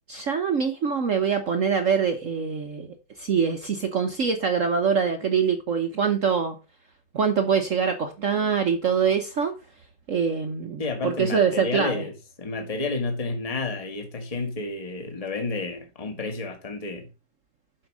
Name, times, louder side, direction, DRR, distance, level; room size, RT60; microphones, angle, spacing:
voice 1, 0.1-2.9 3.2-6.6 7.1-9.5 10.1-12.0, right 6 dB, 50° right, 1.0 m, -24 dB
voice 2, 10.8-17.1, left 3 dB, 20° left, 1.6 m, -31 dB
7.6 x 5.3 x 6.0 m
omnidirectional pair, 2.1 m